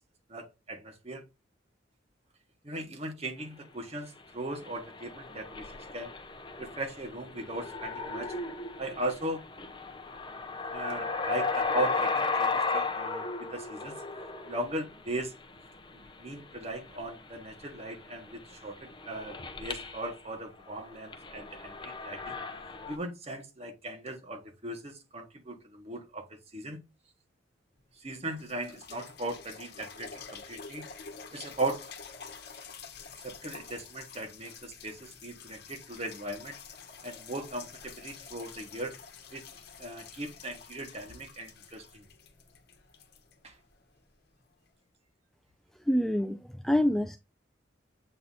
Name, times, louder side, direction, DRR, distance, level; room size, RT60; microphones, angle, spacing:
voice 1, 0.3-1.2 2.6-6.1 6.6-8.3 8.8-9.4 10.7-13.9 14.5-15.3 16.2-22.4 22.9-26.3 26.5-26.8 28.0-30.9 31.3-31.9 33.2-36.6 37.0-38.9 39.3-39.4 39.8-42.0 43.4-43.5, right 2 dB, 35° right, 1.4 m, -38 dB
sound 1, 4.5-20.1 20.7-23.0, left 4 dB, 25° left, 0.7 m, -35 dB
sound 2, 27.8-27.9 28.3-44.0 44.7-44.8, left 5 dB, 55° left, 1.2 m, -48 dB
voice 2, 45.9-47.2, left 1 dB, ahead, 0.3 m, -26 dB
7.9 x 3.0 x 4.0 m
head